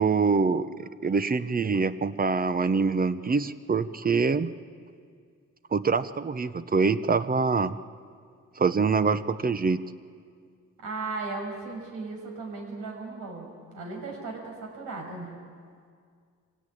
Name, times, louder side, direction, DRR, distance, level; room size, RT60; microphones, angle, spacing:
voice 1, 0.0-4.5 5.7-7.8 8.6-9.8, right 4 dB, 30° right, 13 dB, 0.8 m, -25 dB
voice 2, 10.8-13.5 13.7-15.4, right 3 dB, 85° right, 1 dB, 6.4 m, -36 dB
24.5 x 17.0 x 9.3 m, 2.1 s
cardioid pair, 90°, 30 cm